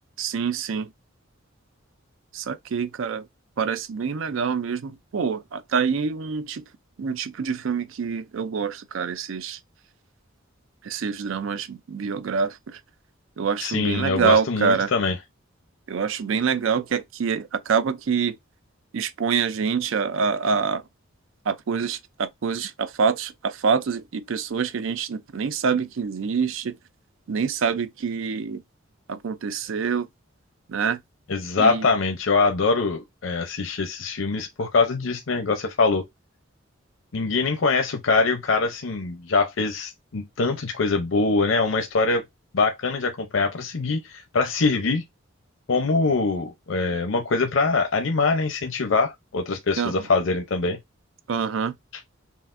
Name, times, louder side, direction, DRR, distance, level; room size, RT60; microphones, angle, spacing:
voice 1, 0.2-0.9 2.3-3.3 3.6-6.6 7.0-9.6 10.8-12.8 13.4-14.9 15.9-18.4 18.9-20.8 21.5-26.8 27.3-28.6 29.1-30.1 30.7-31.0 31.6-31.9 49.8-49.9 51.3-51.7, right 6 dB, 75° right, 0.4 m, -26 dB
voice 2, 13.6-15.1 31.3-36.0 37.1-42.2 42.5-45.0 45.7-50.8, left 3 dB, 75° left, 0.6 m, -23 dB
5.6 x 2.4 x 2.5 m
head